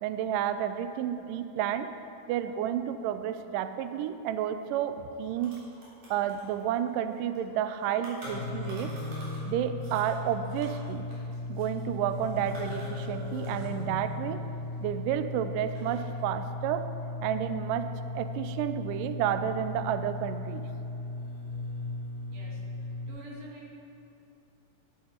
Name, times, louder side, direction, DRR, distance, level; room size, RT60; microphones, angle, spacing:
voice 1, 0.0-1.9 2.3-5.5 6.1-9.0 9.5-11.1 11.5-14.4 14.8-16.9 17.2-20.6, right 10 dB, 90° right, 10 dB, 1.9 m, -31 dB
sound 1, 4.8-4.9 5.1-9.5 9.8-13.8 14.1-15.2 15.6-16.2, right 1 dB, 55° right, 4.7 m, -49 dB
sound 2, 8.2-23.1, left 2 dB, 25° right, 2.7 m, -37 dB
voice 2, 22.3-22.6 22.9-23.7, right 2 dB, 70° right, -5 dB, 4.1 m, -47 dB
13.0 x 11.5 x 4.4 m, 2.9 s
omnidirectional pair, 4.5 m